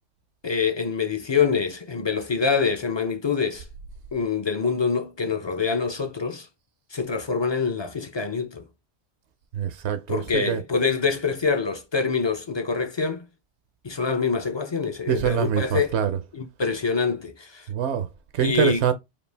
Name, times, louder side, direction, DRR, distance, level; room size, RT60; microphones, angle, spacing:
voice 1, 0.4-3.6 4.1-6.5 6.9-8.6 10.1-13.2 13.8-15.9 16.3-17.7 18.4-18.8, left 5 dB, 40° left, 0.4 m, -25 dB
voice 2, 9.5-10.6 15.1-16.2 17.7-18.1 18.3-18.9, right 8 dB, 75° right, 0.8 m, -24 dB
5.1 x 2.4 x 3.3 m
omnidirectional pair, 1.2 m